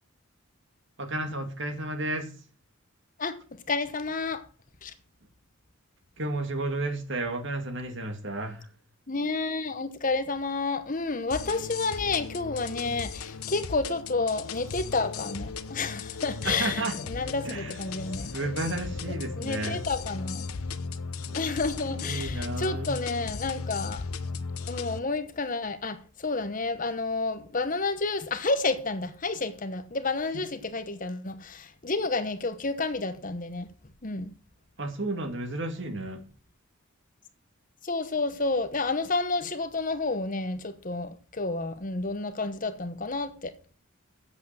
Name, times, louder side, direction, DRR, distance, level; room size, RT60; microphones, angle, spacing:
voice 1, 1.0-2.3 6.2-8.7 16.4-17.0 17.4-17.8 18.2-19.8 21.2-21.7 22.0-23.0 34.8-36.2, right 2 dB, 55° right, 2.3 m, -32 dB
voice 2, 3.2-4.4 4.8-4.9 9.1-16.8 17.1-18.3 19.4-20.5 21.3-24.0 24.7-33.7 34.0-34.3 37.8-43.5, left 3 dB, 40° left, 1.0 m, -30 dB
sound 1, 11.3-25.0, left 5 dB, 90° left, 0.8 m, -36 dB
8.3 x 7.9 x 7.5 m
head